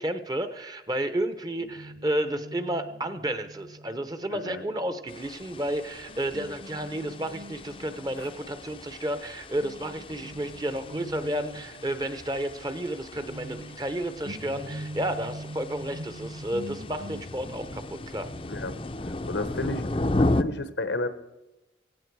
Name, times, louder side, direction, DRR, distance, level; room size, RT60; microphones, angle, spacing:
voice 1, 0.0-18.3, right 1 dB, 20° right, 10 dB, 0.9 m, -31 dB
Guitar, 1.6-9.3 9.6-20.0, right 1 dB, 60° right, 4.8 m, -44 dB
voice 2, 4.3-4.6 8.2-8.3 18.5-18.7 19.0-21.1, left 2 dB, 85° left, 11 dB, 1.1 m, -33 dB
sound 1, 5.1-20.4, left 2 dB, 30° left, 0.6 m, -35 dB
17.5 x 16.0 x 4.8 m, 1.0 s
head